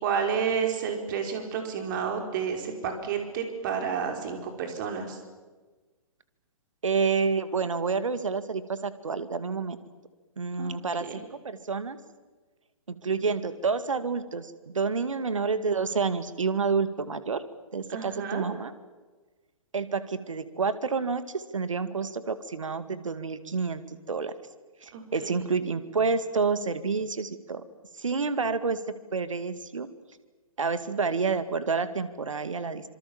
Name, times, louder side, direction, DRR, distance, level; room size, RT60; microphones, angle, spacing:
voice 1, 0.0-5.2 10.6-10.7 11.0-11.1 17.9-18.5 24.9-25.3, right 6 dB, 35° right, 4 dB, 5.0 m, -30 dB
voice 2, 6.8-9.8 10.4-12.0 12.9-17.4 17.7-18.7 19.7-23.8 24.1-24.3 24.8-27.6 27.9-28.8 29.1-29.9 30.6-32.9, right 5 dB, 65° right, 13 dB, 2.1 m, -29 dB
26.0 x 25.5 x 7.3 m, 1.3 s
figure-of-eight pair, 125°, 18 cm